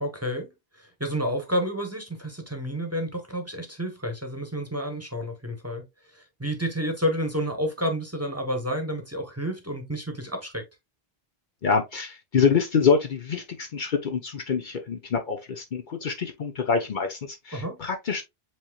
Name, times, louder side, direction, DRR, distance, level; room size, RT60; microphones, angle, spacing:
voice 1, 0.0-5.8 6.1-10.6 17.5-17.8, equal, 15° right, 1.0 m, -30 dB
voice 2, 11.6-18.2, left 6 dB, 55° left, 0.8 m, -26 dB
7.6 x 2.9 x 2.3 m
omnidirectional pair, 1.0 m